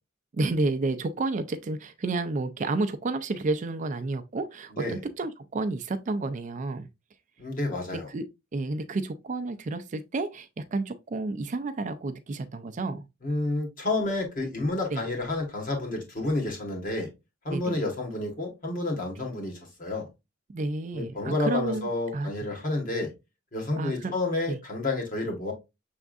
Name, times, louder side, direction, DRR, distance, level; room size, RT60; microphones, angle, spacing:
voice 1, 0.3-6.9 7.9-13.0 14.9-15.1 17.5-17.8 19.2-19.3 20.5-22.3 23.8-24.1 24.5-24.6, right 2 dB, 35° right, 0.4 m, -31 dB
voice 2, 7.4-8.1 13.2-17.1 17.4-20.1 20.9-23.1 23.5-25.5, left 2 dB, 40° left, 1.5 m, -30 dB
6.2 x 3.5 x 2.4 m
head